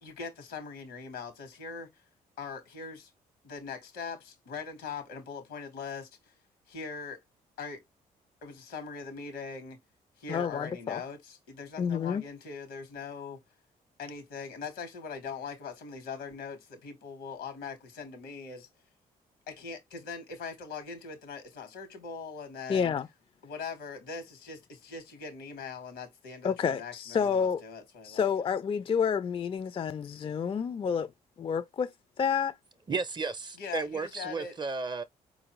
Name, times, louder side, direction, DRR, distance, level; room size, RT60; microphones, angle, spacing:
voice 1, 0.0-1.9 2.4-3.1 3.4-6.1 6.7-7.2 7.6-7.8 8.4-9.8 10.2-13.4 14.0-18.7 19.5-22.9 23.4-28.3 33.6-34.6, left 5 dB, 90° left, 1.3 m, -41 dB
voice 2, 10.3-11.0 11.8-12.2 22.7-23.1 26.4-27.6 28.0-31.1 31.4-31.9 32.2-32.5, left 7 dB, 35° left, 0.4 m, -29 dB
voice 3, 32.9-35.0, right 4 dB, 25° right, 0.5 m, -33 dB
4.3 x 2.5 x 2.9 m
supercardioid pair, 65°, 17 cm